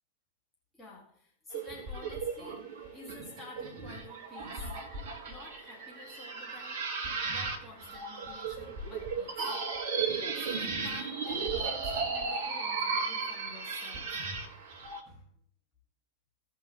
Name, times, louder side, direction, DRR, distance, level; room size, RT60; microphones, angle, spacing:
voice 1, 0.7-4.7 5.3-6.8 7.3-9.4 10.3-14.2 15.1-15.3, left 2 dB, 10° left, -3 dB, 2.2 m, -51 dB
sound 1, 1.5-15.0, right 4 dB, 55° right, 1.6 m, -35 dB
17.0 x 5.7 x 3.2 m, 0.64 s
figure-of-eight pair, 90°, 0 cm